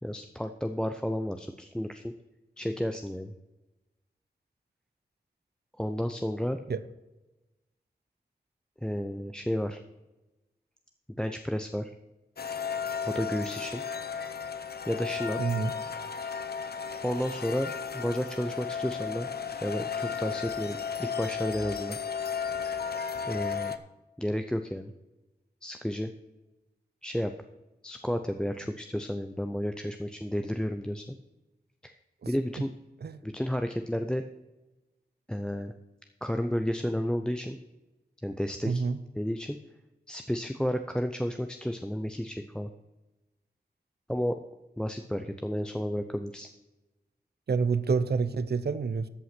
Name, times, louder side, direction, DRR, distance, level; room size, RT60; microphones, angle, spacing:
voice 1, 0.0-2.1 2.6-3.3 5.8-6.6 8.8-9.8 11.2-11.9 13.0-13.8 14.9-15.4 17.0-19.3 19.6-22.0 23.2-23.7 24.2-24.9 25.6-26.1 27.0-27.3 27.8-31.2 31.8-31.9 32.3-32.7 33.2-34.2 35.3-35.7 36.2-37.6 38.2-38.8 39.2-39.6 40.1-42.7 44.1-44.4 44.8-46.5, equal, 5° left, 7 dB, 0.6 m, -32 dB
sound 1, 12.4-23.8, left 6 dB, 70° left, 0.7 m, -34 dB
voice 2, 15.4-15.7 32.2-32.3 33.0-33.2 38.6-39.0 47.5-49.1, right 5 dB, 75° right, 15 dB, 0.7 m, -28 dB
13.5 x 5.7 x 6.0 m, 1.1 s
wide cardioid pair, 65°, 17 cm